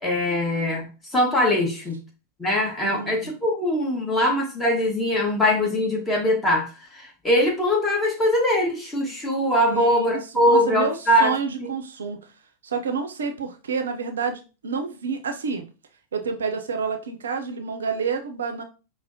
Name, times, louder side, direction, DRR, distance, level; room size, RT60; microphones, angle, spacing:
voice 1, 0.0-2.0 2.4-11.3 11.6-11.7, left 1 dB, 15° left, -1 dB, 1.2 m, -22 dB
voice 2, 2.8-3.3 9.7-12.2 12.6-15.6 16.1-18.6, right 5 dB, 65° right, 6 dB, 0.5 m, -29 dB
5.3 x 2.0 x 2.7 m, 0.32 s
figure-of-eight pair, 90°, 0 cm